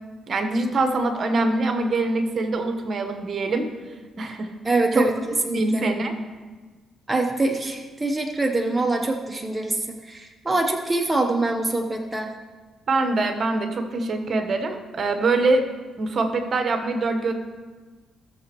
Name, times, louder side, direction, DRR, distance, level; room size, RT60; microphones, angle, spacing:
voice 1, 0.3-3.7 4.2-4.5 4.9-5.1 5.5-6.2 12.9-15.6 16.0-17.3, right 2 dB, 50° right, 6 dB, 1.1 m, -23 dB
voice 2, 4.6-5.8 7.1-12.3, right 2 dB, 15° right, 3 dB, 0.8 m, -24 dB
17.0 x 7.0 x 3.0 m, 1.4 s
cardioid pair, 90°, 0 cm